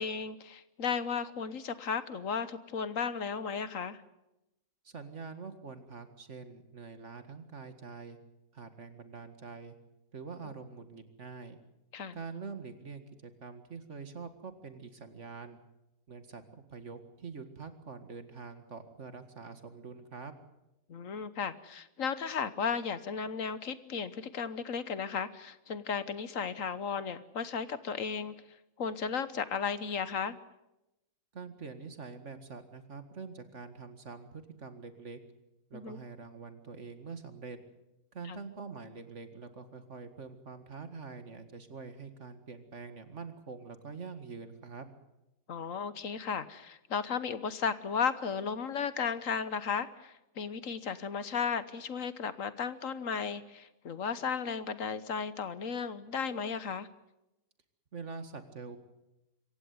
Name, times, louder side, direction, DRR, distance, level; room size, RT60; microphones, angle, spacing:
voice 1, 0.0-4.0 11.9-12.2 20.9-28.3 28.8-30.4 35.7-36.0 38.3-38.4 45.5-56.9, left 6 dB, 65° left, 14 dB, 1.5 m, -35 dB
voice 2, 4.8-8.2 8.5-9.8 10.1-11.6 12.1-15.6 16.1-20.3 31.3-35.2 35.7-37.6 38.1-44.9 57.9-58.8, right 5 dB, 55° right, 9 dB, 2.2 m, -45 dB
26.0 x 15.5 x 9.6 m, 0.93 s
omnidirectional pair, 1.5 m